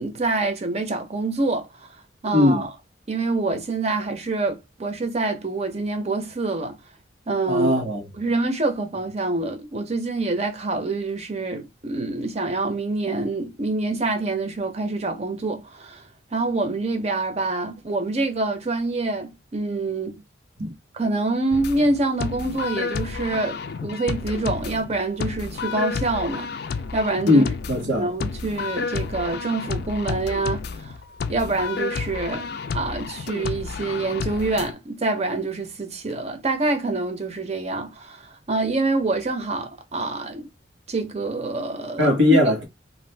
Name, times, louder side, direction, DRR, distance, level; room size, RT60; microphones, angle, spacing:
voice 1, 0.0-1.9 2.2-2.7 3.1-6.8 7.3-7.7 8.2-16.0 16.3-20.2 20.9-26.5 26.9-27.4 28.0-31.0 31.3-32.5 32.7-40.5 40.9-42.4, right 2 dB, 35° right, 0.7 m, -26 dB
voice 2, 2.3-2.7 7.5-8.0 20.6-20.7 27.2-28.1 42.0-42.6, left 2 dB, 80° right, 1.3 m, -19 dB
sound 1, 21.5-34.7, left 5 dB, 55° left, 0.3 m, -31 dB
2.6 x 2.4 x 3.3 m
head